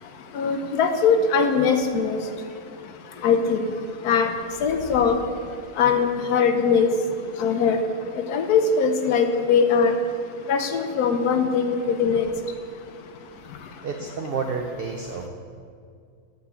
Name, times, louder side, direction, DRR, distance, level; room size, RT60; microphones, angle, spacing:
voice 1, 0.3-2.2 3.2-3.7 4.0-4.3 4.6-5.2 5.8-6.9 7.4-7.8 8.3-9.9 10.5-12.3, left 6 dB, 85° left, 6 dB, 1.2 m, -21 dB
voice 2, 13.8-15.3, right 5 dB, 60° right, 3 dB, 0.6 m, -30 dB
10.5 x 4.7 x 6.7 m, 2.2 s
omnidirectional pair, 1.6 m